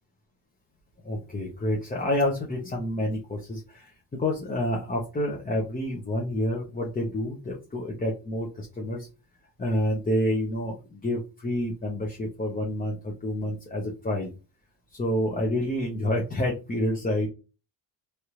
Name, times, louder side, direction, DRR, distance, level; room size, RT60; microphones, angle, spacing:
voice 1, 1.0-9.1 9.6-14.3 14.9-17.3, left 1 dB, 20° left, -2 dB, 0.8 m, -28 dB
3.3 x 2.5 x 2.9 m, 0.31 s
cardioid pair, 95°, 46 cm